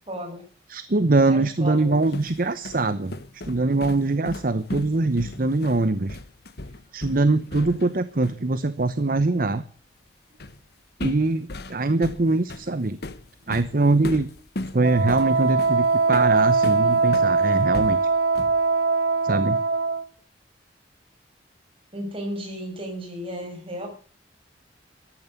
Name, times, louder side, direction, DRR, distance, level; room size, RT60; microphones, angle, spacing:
voice 1, 0.1-0.4 1.3-2.1 6.6-6.7 21.9-23.9, equal, 30° right, 2 dB, 6.6 m, -34 dB
voice 2, 0.7-3.2 3.4-6.2 6.9-9.6 11.0-13.0 13.5-14.3 14.7-18.0 19.2-19.6, right 2 dB, 50° right, 13 dB, 0.9 m, -23 dB
sound 1, 1.8-8.5 10.4-10.6 11.0-17.3 17.7-18.7, left 2 dB, 60° left, 1.2 m, -36 dB
Wind instrument woodwind instrument, 14.8-20.1, right 4 dB, 65° right, 1.7 m, -21 dB
14.0 x 11.0 x 8.0 m, 0.42 s
head